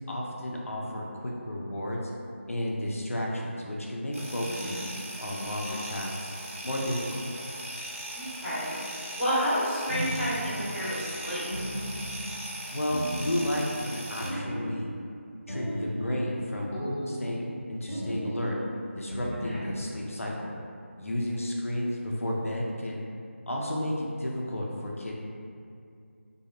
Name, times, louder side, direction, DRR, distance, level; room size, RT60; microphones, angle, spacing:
voice 1, 0.1-2.1 2.5-4.8 5.2-6.3 6.6-7.3 12.7-14.9 15.5-16.8 17.1-17.4 17.7-18.6 18.9-20.5 21.0-23.0 23.5-25.1, left 1 dB, 80° left, -2 dB, 0.5 m, -32 dB
sound 1, 4.1-14.3, right 1 dB, 80° right, 0.6 m, -39 dB
voice 2, 4.4-5.0 8.1-11.4 19.4-19.6, equal, 5° right, -21 dB, 0.9 m, -31 dB
sound 2, 9.9-10.7 11.5-12.4 12.9-13.9 14.2-15.0 15.5-16.3 16.7-17.6 17.9-18.7 19.1-20.1, equal, 55° left, 1.0 m, -35 dB
2.1 x 2.0 x 3.0 m, 2.4 s
figure-of-eight pair, 165°, 7 cm